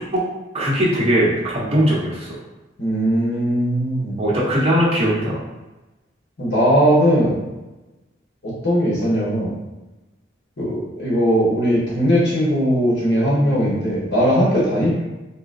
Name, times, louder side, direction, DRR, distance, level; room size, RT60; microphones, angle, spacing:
voice 1, 0.5-2.4 4.2-5.4, equal, 30° right, -7 dB, 0.9 m, -19 dB
voice 2, 2.8-4.2 6.4-7.4 8.4-9.5 10.6-15.0, equal, 60° left, -6 dB, 1.1 m, -19 dB
3.8 x 2.1 x 2.5 m, 1.1 s
head